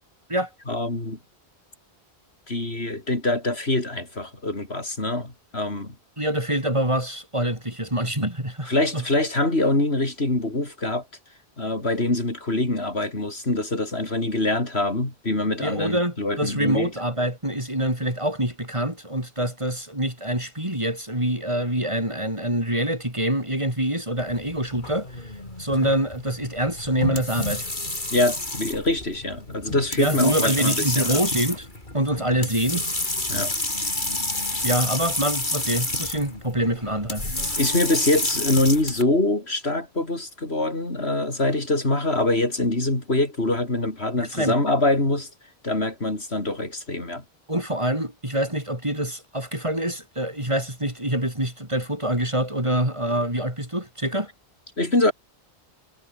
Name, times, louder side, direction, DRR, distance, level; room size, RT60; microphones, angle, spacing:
voice 1, 0.7-1.2 2.5-5.9 8.7-11.0 11.6-16.9 28.1-31.2 33.3-33.5 37.6-45.3 45.6-47.2 54.8-55.1, left 2 dB, 75° left, 5.1 m, -24 dB
voice 2, 6.2-9.0 15.6-25.3 25.6-27.7 30.0-31.7 31.9-32.9 34.6-37.6 44.2-44.6 47.5-54.3, right 1 dB, 30° right, 5.4 m, -25 dB
sound 1, 24.2-39.0, left 2 dB, 50° left, 4.7 m, -29 dB
omnidirectional pair, 1.1 m